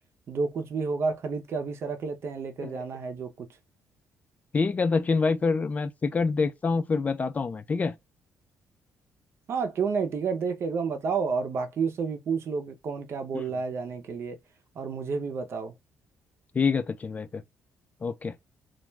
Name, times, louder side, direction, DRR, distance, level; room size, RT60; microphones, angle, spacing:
voice 1, 0.3-3.5 9.5-14.4 14.8-15.7, right 5 dB, 50° right, 0.6 m, -30 dB
voice 2, 4.5-8.0 13.3-13.5 16.5-17.4 18.0-18.4, left 4 dB, 25° left, 0.3 m, -26 dB
2.3 x 2.2 x 3.1 m
cardioid pair, 130°, 6 cm